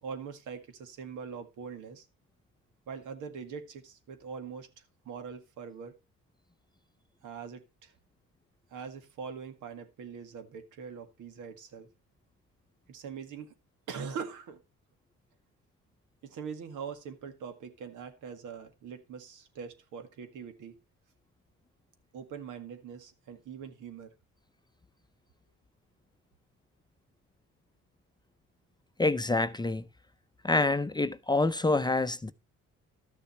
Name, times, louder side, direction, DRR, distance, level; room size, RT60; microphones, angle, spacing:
voice 1, 0.0-2.1 2.9-4.7 5.0-6.0 7.2-7.9 8.7-11.9 12.9-13.5 13.9-14.6 16.2-20.7 22.1-24.1, right 6 dB, 85° right, 2.0 m, -42 dB
voice 2, 29.0-29.8 30.4-32.3, left 2 dB, 15° left, 0.6 m, -27 dB
12.5 x 6.9 x 4.3 m
cardioid pair, 90°, 30 cm